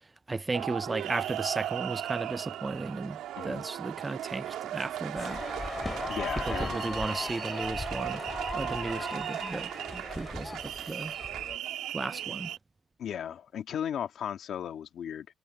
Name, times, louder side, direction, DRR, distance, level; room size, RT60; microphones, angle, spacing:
voice 1, 0.3-3.2 3.4-5.4 6.5-8.2 8.5-11.1 11.9-12.5, right 3 dB, 20° right, 0.4 m, -35 dB
sound 1, 0.5-12.6, right 12 dB, 85° right, 2.5 m, -37 dB
voice 2, 3.3-3.7 6.1-6.8 13.0-15.3, left 9 dB, 65° left, 2.3 m, -36 dB
sound 2, 5.1-11.6, left 2 dB, 15° left, 2.3 m, -37 dB
cardioid pair, 90°, 0 cm